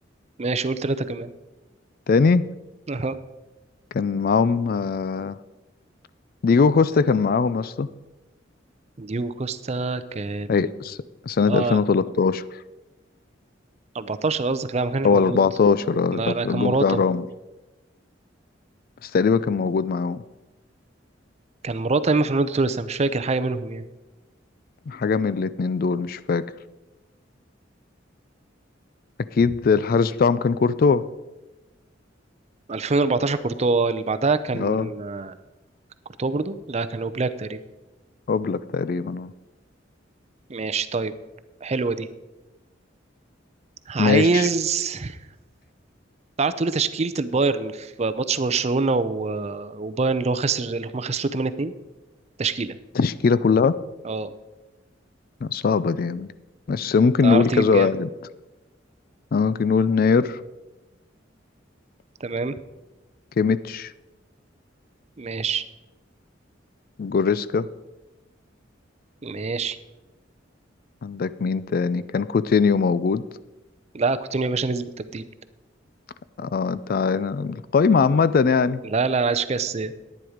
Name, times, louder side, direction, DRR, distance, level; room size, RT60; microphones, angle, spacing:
voice 1, 0.4-1.3 2.9-3.2 9.0-10.7 11.5-11.8 13.9-15.4 16.1-17.0 21.6-23.8 32.7-35.3 36.2-37.6 40.5-41.1 41.6-42.1 43.9-45.2 46.4-51.7 52.4-52.8 54.0-54.3 57.2-57.9 62.2-62.5 65.2-65.6 69.2-69.8 73.9-75.3 78.8-79.9, right 3 dB, 35° right, 12 dB, 0.5 m, -25 dB
voice 2, 2.1-2.5 3.9-5.4 6.4-7.9 10.5-11.0 11.3-12.4 15.0-17.3 19.0-20.2 24.9-26.4 29.3-31.0 34.5-34.9 38.3-39.3 44.0-44.4 53.0-53.7 55.4-56.3 56.7-58.1 59.3-60.4 63.4-63.9 67.0-67.7 71.0-73.2 76.4-78.8, left 5 dB, 50° left, 16 dB, 0.4 m, -21 dB
10.5 x 9.6 x 5.0 m, 1.1 s
head